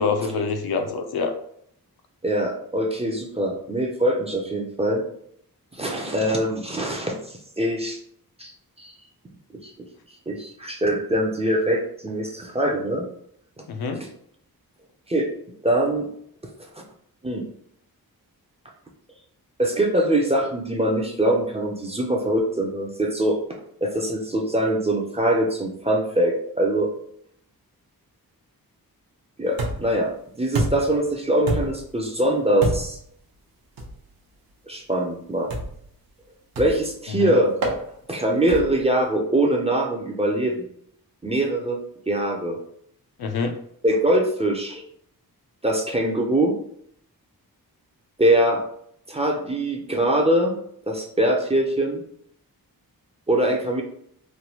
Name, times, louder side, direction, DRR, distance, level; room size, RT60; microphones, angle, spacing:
voice 1, 0.0-1.4 13.7-14.0 37.2-37.3 43.2-43.6, left 4 dB, 80° left, 6 dB, 0.5 m, -26 dB
voice 2, 2.2-5.0 5.7-7.2 7.6-8.0 8.4-8.5 8.8-8.9 9.6-9.7 10.3-13.0 14.0-14.1 15.1-15.3 15.6-16.1 17.2-17.4 19.6-23.4 23.8-26.9 29.4-30.1 30.4-33.0 34.7-35.5 36.6-37.5 38.1-40.6 41.2-41.8 42.1-42.6 43.8-44.8 45.6-46.5 48.2-48.6 49.1-50.5 50.9-52.0 53.3-53.8, right 1 dB, 15° right, 0 dB, 0.4 m, -23 dB
sound 1, 29.6-30.0 30.5-31.0 31.5-31.9 32.6-33.0 33.8-34.0 35.5-35.9 36.6-36.9 37.6-37.8 38.5-38.8, right 1 dB, 70° right, 0.7 m, -27 dB
3.2 x 2.2 x 2.8 m, 0.68 s
wide cardioid pair, 145°, 37 cm